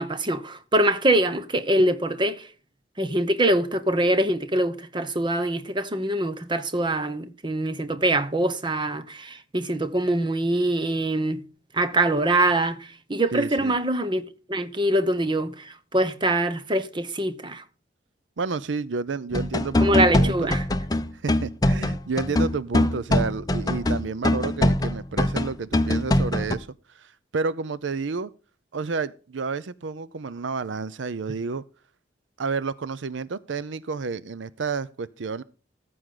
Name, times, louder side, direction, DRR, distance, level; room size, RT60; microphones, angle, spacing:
voice 1, 0.0-2.5 3.0-11.4 11.7-14.2 14.5-17.6 19.8-20.6, right 1 dB, 25° right, 1.0 m, -24 dB
voice 2, 13.3-13.7 18.4-20.5 21.2-26.7 26.9-28.3 28.7-31.6 32.4-35.4, right 4 dB, 90° right, 0.6 m, -30 dB
sound 1, 19.3-26.6, left 1 dB, 20° left, 0.7 m, -23 dB
14.5 x 7.9 x 3.8 m
head